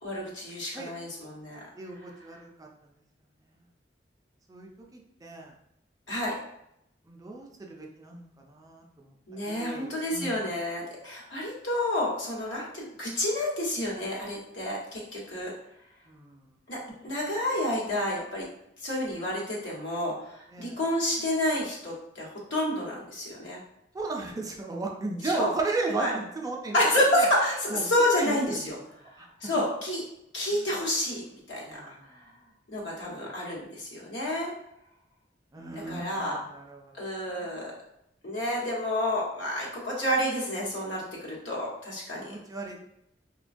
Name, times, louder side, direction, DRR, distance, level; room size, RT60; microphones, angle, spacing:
voice 1, 0.0-1.6 6.1-6.3 9.3-15.5 16.7-16.8 17.0-18.4 18.8-23.6 25.3-25.5 26.0-26.1 26.7-28.8 29.4-30.0 30.3-32.0 32.7-34.5 35.9-36.4 37.0-37.7 38.2-42.3, left 1 dB, 85° left, -4 dB, 1.0 m, -29 dB
voice 2, 1.7-2.7 4.5-5.5 7.1-9.1 9.4-10.5 16.1-16.5 20.5-20.8 23.9-26.8 27.2-27.3 27.7-28.7 29.2-29.3 30.5-30.8 31.6-32.3 35.5-37.0 37.3-37.5 42.2-42.8, right 3 dB, 20° right, 0 dB, 0.3 m, -35 dB
3.1 x 2.2 x 2.5 m, 0.78 s
head